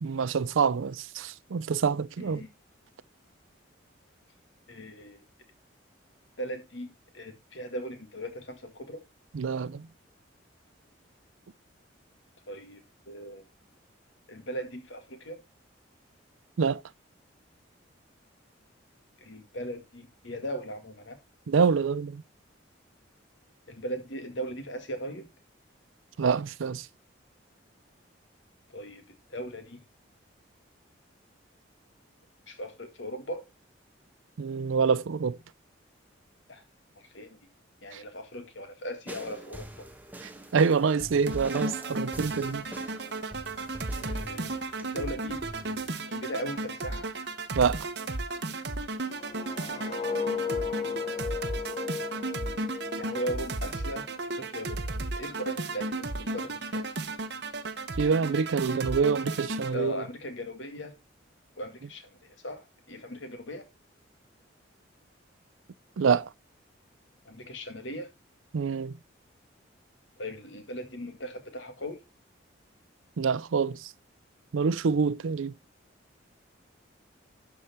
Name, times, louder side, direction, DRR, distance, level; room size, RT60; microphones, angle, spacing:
voice 1, 0.0-2.4 9.3-9.9 16.6-16.8 21.5-22.2 26.2-26.9 34.4-35.4 37.9-38.0 40.5-42.7 47.5-47.9 58.0-59.9 66.0-66.3 68.5-68.9 73.2-73.9 74.5-75.5, right 5 dB, 85° right, 0.5 m, -26 dB
voice 2, 2.2-2.5 4.7-5.2 6.4-9.1 12.5-12.8 13.1-13.5 14.3-15.4 19.2-21.2 23.7-25.3 28.7-29.8 32.5-33.4 36.5-36.6 37.0-37.4 37.8-39.9 44.0-45.4 46.1-47.1 50.7-51.0 53.0-54.1 54.4-54.8 55.1-57.1 59.7-61.0 61.6-63.7 67.2-68.1 70.2-72.0, equal, 75° left, 2.1 m, -38 dB
sound 1, 39.1-45.9, right 1 dB, 10° right, 1.0 m, -45 dB
sound 2, 41.3-59.7, right 2 dB, 55° right, 1.1 m, -34 dB
sound 3, 49.0-54.0 54.4-54.7, left 6 dB, 30° left, 0.8 m, -35 dB
12.0 x 4.9 x 4.3 m
head